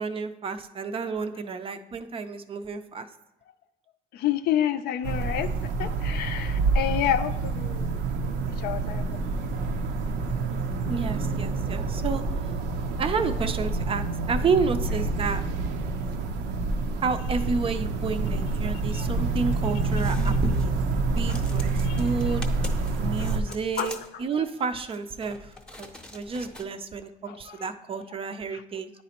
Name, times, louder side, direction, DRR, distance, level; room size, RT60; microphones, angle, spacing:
voice 1, 0.0-3.1 10.9-12.5 13.0-15.4 17.0-20.8 21.2-22.5 23.0-28.9, right 4 dB, 35° right, 10 dB, 0.4 m, -30 dB
voice 2, 4.1-5.5 5.8-9.0 9.4-9.5 18.9-19.1 21.3-21.4 21.8-22.1 23.2-23.9 24.3-24.4 27.3-27.6 28.5-28.6, left 10 dB, 70° left, 10 dB, 0.4 m, -30 dB
sound 1, 5.0-23.4, right 3 dB, 90° right, 0.5 m, -27 dB
sound 2, 19.8-20.7 21.0-26.6, left 1 dB, 5° left, 0.7 m, -44 dB
9.8 x 4.0 x 2.9 m, 0.97 s
cardioid pair, 110°, 17 cm